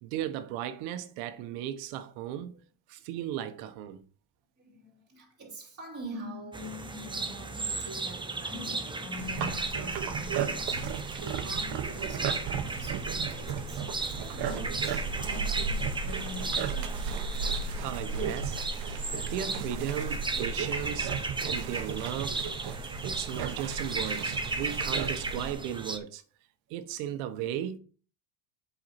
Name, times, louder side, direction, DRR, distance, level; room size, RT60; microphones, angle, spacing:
voice 1, 0.0-2.5 2.9-4.0 17.8-19.0 19.2-21.1 21.4-22.4 23.0-26.2 26.7-27.8, right 11 dB, 75° right, 1.3 m, -36 dB
voice 2, 4.6-17.2 19.2-19.3, left 1 dB, 30° right, 2.9 m, -44 dB
sound 1, 6.5-26.0, right 3 dB, 10° right, 0.8 m, -35 dB
sound 2, 9.2-25.5, right 5 dB, 50° right, 1.3 m, -35 dB
7.7 x 5.6 x 4.3 m
supercardioid pair, 110°, 50 cm